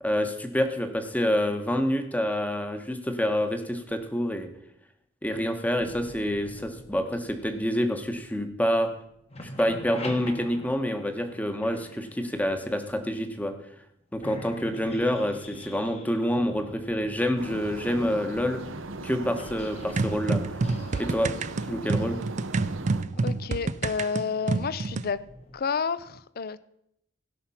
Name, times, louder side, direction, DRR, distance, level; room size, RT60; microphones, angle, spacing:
voice 1, 0.0-4.5 5.2-8.9 9.6-13.5 14.1-18.6 19.0-20.4 21.0-21.3 21.7-22.2, equal, 10° left, 1.1 m, -27 dB
sound 1, 5.8-9.0 9.2-13.2 13.8-13.9 14.2-25.6, left 1 dB, 35° left, 1.3 m, -46 dB
sound 2, 17.4-23.0, right 2 dB, 80° right, 0.9 m, -38 dB
sound 3, 20.0-25.1, right 3 dB, 40° right, 0.4 m, -28 dB
voice 2, 23.2-25.2 25.5-26.6, left 5 dB, 50° left, 0.5 m, -30 dB
17.0 x 5.9 x 5.6 m
head